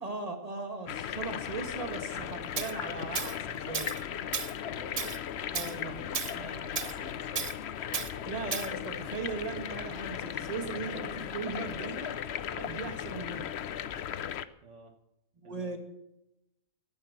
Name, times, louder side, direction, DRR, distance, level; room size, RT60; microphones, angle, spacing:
voice 1, 0.0-3.9 5.5-5.9 6.3-6.5 8.2-12.1 12.5-13.4 13.9-14.0 15.4-15.8, right 3 dB, 30° right, 5 dB, 2.1 m, -38 dB
sound 1, 0.9-14.4, left 9 dB, 60° left, 0.9 m, -37 dB
Tools, 2.6-2.7 3.2-3.4 3.7-4.0 4.3-4.5 5.0-5.2 5.5-5.8 6.1-6.4 6.8-6.9 7.4-7.6 7.9-8.1 8.5-8.7, right 6 dB, 45° right, 0.5 m, -34 dB
voice 2, 4.6-5.5 5.9-8.5 11.2-11.9 12.1-12.5 14.6-14.9 15.4-15.8, right 3 dB, 60° right, 4 dB, 1.7 m, -52 dB
15.0 x 12.0 x 6.1 m, 0.86 s
omnidirectional pair, 1.4 m